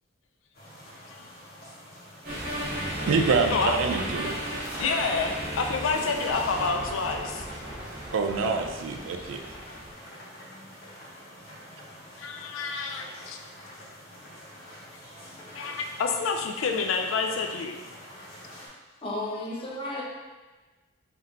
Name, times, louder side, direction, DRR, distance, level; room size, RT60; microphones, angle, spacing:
sound 1, 0.5-18.7, equal, 50° left, 1.1 m, -47 dB
sound 2, 2.2-9.9, equal, 40° right, 1.4 m, -35 dB
voice 1, 3.0-4.4 8.1-9.6, right 4 dB, 65° right, 4 dB, 0.4 m, -26 dB
voice 2, 4.8-7.5 12.1-13.4 15.5-17.8, left 4 dB, 70° left, 4 dB, 0.4 m, -28 dB
voice 3, 19.0-20.0, left 1 dB, 25° left, -3 dB, 0.7 m, -33 dB
3.6 x 2.8 x 3.7 m, 1.3 s
head